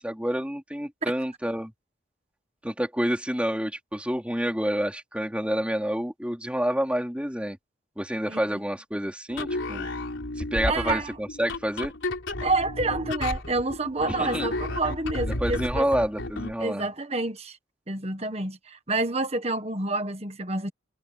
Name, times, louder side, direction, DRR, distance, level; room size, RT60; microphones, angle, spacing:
voice 1, 0.0-1.7 2.6-7.6 8.0-9.9 10.4-11.9 14.2-14.5 15.4-16.8, equal, 5° right, 4.1 m, -28 dB
sound 1, 9.3-16.6, left 2 dB, 75° left, 3.6 m, -32 dB
voice 2, 10.7-11.2 12.4-15.9 16.6-17.6 17.9-20.7, right 2 dB, 30° right, 1.5 m, -28 dB
head